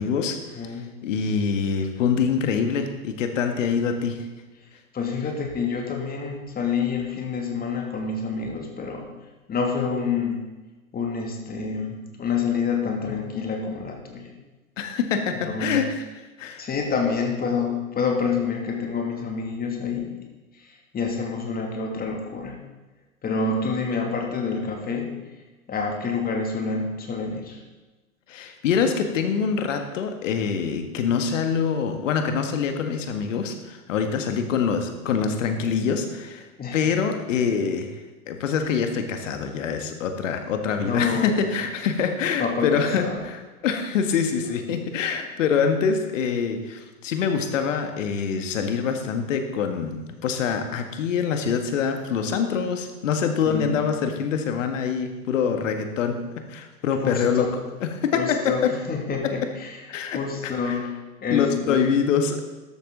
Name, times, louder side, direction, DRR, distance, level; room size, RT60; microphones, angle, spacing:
voice 1, 0.0-0.4 0.7-4.2 14.8-16.0 16.4-16.7 28.3-36.5 36.7-37.9 38.3-56.2 56.5-57.5 57.8-58.7 59.9-60.2 60.6-60.8 61.3-62.4, left 6 dB, 60° left, 6 dB, 1.9 m, -25 dB
voice 2, 0.5-0.9 4.9-9.1 9.5-10.4 10.9-14.3 15.5-15.9 16.6-20.1 20.6-22.6 23.2-25.1 25.7-27.6 36.6-36.9 40.8-41.5 42.4-43.2 53.4-53.8 57.0-57.6 58.1-59.8 60.1-61.9, left 5 dB, 20° left, 2 dB, 2.6 m, -28 dB
13.5 x 12.0 x 4.0 m, 1.2 s
figure-of-eight pair, 95°, 43 cm